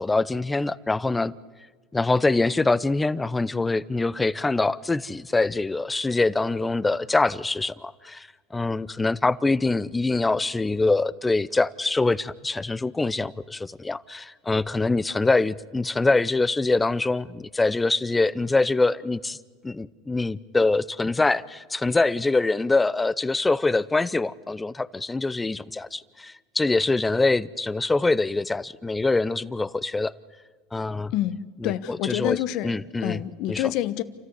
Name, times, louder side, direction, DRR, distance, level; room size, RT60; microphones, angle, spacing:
voice 1, 0.0-1.3 1.9-19.4 19.6-30.1 30.7-31.1 31.6-32.4 32.6-33.2 33.5-33.6, left 3 dB, 10° left, 0.7 m, -24 dB
voice 2, 31.1-32.7 33.0-34.0, left 13 dB, 60° left, 1.1 m, -27 dB
28.5 x 14.0 x 9.7 m
supercardioid pair, 105°, 0 cm